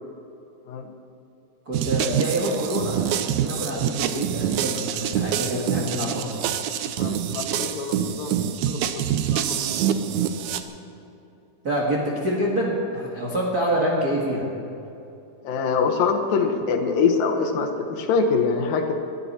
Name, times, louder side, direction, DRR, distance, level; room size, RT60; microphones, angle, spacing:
voice 1, 1.6-6.4 11.6-14.5, right 1 dB, 40° right, -3 dB, 1.4 m, -26 dB
sound 1, 1.7-10.6, right 9 dB, 80° right, 1.7 m, -26 dB
voice 2, 7.0-9.0 9.3-9.7 15.4-18.9, left 5 dB, 80° left, 5 dB, 2.8 m, -24 dB
20.5 x 12.5 x 4.3 m, 2.8 s
omnidirectional pair, 4.1 m